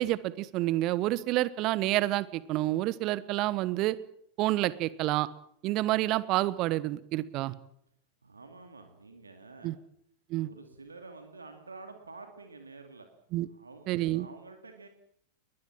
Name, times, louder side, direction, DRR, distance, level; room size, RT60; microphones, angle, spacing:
voice 1, 0.0-4.0 4.4-5.3 5.6-7.5 9.6-9.7 10.3-10.5 13.3-13.5 13.9-14.3, right 16 dB, 40° right, 18 dB, 1.2 m, -28 dB
voice 2, 8.2-9.8 10.4-13.1 13.5-14.9, right 3 dB, 75° right, 6 dB, 2.4 m, -49 dB
21.5 x 20.5 x 7.5 m, 0.71 s
figure-of-eight pair, 90°, 0 cm